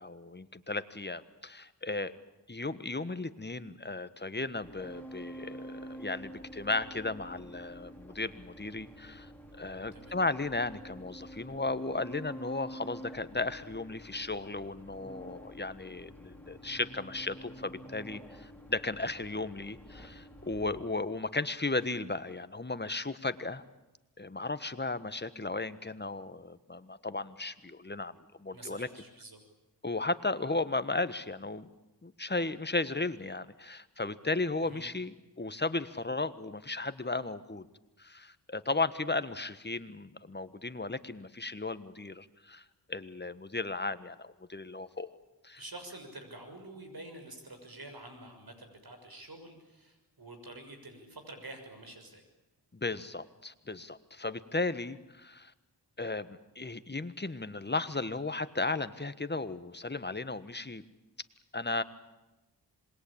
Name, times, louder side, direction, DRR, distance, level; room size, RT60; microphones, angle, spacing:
voice 1, 0.0-2.1 2.5-9.3 9.6-23.6 24.2-28.1 28.4-28.9 29.8-31.7 32.0-37.6 38.0-45.2 45.4-45.6 52.7-55.5 56.0-60.8 61.5-61.8, left 3 dB, 25° left, 13 dB, 1.5 m, -35 dB
sound 1, 4.6-20.8, equal, 5° left, 4.9 m, -48 dB
voice 2, 9.9-10.2 28.5-29.4 34.6-34.8 45.6-52.3, right 2 dB, 60° right, 6 dB, 6.7 m, -48 dB
27.0 x 21.0 x 8.8 m, 1.0 s
cardioid pair, 50°, 42 cm